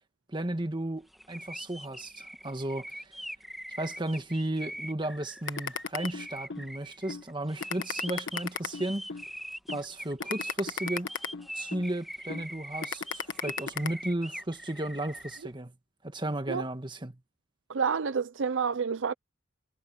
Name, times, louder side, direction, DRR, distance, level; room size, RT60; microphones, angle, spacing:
voice 1, 0.3-3.1 3.8-9.0 9.7-11.1 11.5-15.7 16.0-17.2, right 1 dB, 25° right, 1.6 m, -34 dB
sound 1, 1.1-15.4, equal, ahead, 2.3 m, -42 dB
sound 2, 5.5-6.6 7.1-7.2 7.6-9.2 9.7-9.8 10.2-11.9 12.3-12.4 12.8-13.9, left 5 dB, 65° left, 1.4 m, -34 dB
voice 2, 17.7-19.1, right 6 dB, 70° right, 0.6 m, -29 dB
head